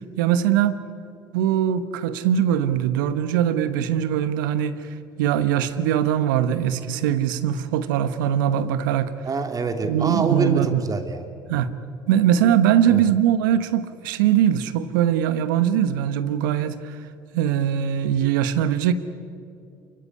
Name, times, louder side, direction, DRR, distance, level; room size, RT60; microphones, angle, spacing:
voice 1, 0.2-0.8 1.3-4.8 5.2-9.1 9.9-10.8 11.5-11.7 12.1-17.0 17.3-18.9, right 10 dB, 80° right, 12 dB, 1.1 m, -21 dB
voice 2, 9.2-11.2 12.9-13.0, right 3 dB, 35° right, 6 dB, 2.7 m, -26 dB
28.0 x 16.5 x 9.9 m, 2.5 s
hypercardioid pair, 60°, 11 cm